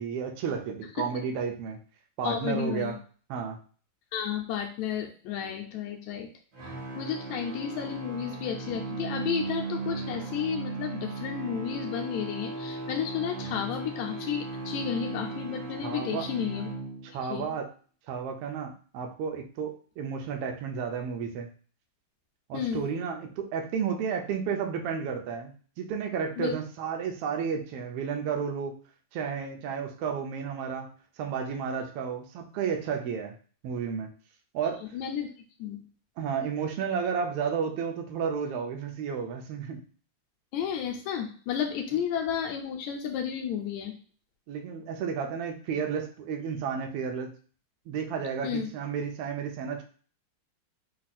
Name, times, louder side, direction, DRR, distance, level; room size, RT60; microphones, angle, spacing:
voice 1, 0.0-1.8 2.2-3.0 3.3-3.6 15.8-16.3 17.0-17.7 18.1-21.5 22.5-28.8 29.1-30.9 31.2-33.3 33.6-34.1 34.5-34.8 36.2-39.8 44.5-47.3 47.9-49.8, right 6 dB, 80° right, 4 dB, 1.3 m, -32 dB
voice 2, 2.2-2.9 4.1-6.3 6.6-16.7 17.3-17.5 22.5-22.9 26.4-26.5 34.9-35.3 35.6-35.8 40.5-43.9 48.4-48.7, left 8 dB, 80° left, 2 dB, 1.9 m, -32 dB
sound 1, 6.5-17.3, right 3 dB, 60° right, 0.8 m, -37 dB
4.9 x 2.3 x 4.1 m, 0.41 s
omnidirectional pair, 3.5 m